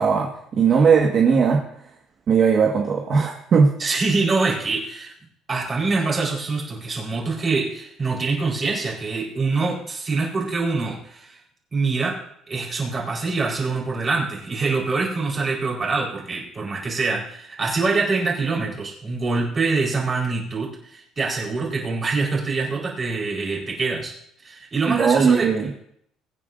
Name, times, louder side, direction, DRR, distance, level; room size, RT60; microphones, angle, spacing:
voice 1, 0.0-1.6 2.3-3.7 24.9-25.7, right 6 dB, 45° right, 0 dB, 1.5 m, -18 dB
voice 2, 3.8-5.1 5.5-11.4 11.7-12.2 12.5-24.1 24.4-25.7, right 3 dB, 30° right, -2 dB, 4.1 m, -25 dB
23.0 x 9.5 x 2.6 m, 0.70 s
cardioid pair, 125°, 0 cm